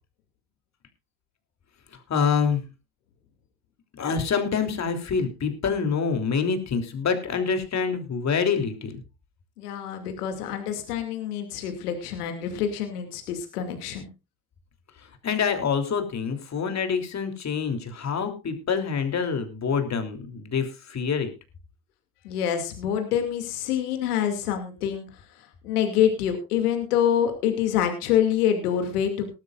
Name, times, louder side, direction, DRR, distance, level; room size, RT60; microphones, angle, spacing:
voice 1, 2.1-2.6 4.0-9.0 15.2-21.3, left 6 dB, 35° left, 6 dB, 3.2 m, -26 dB
voice 2, 9.6-14.1 22.2-25.1 25.6-29.3, left 9 dB, 85° left, 6 dB, 2.6 m, -26 dB
19.0 x 12.5 x 2.5 m, 0.27 s
hypercardioid pair, 85°, 44 cm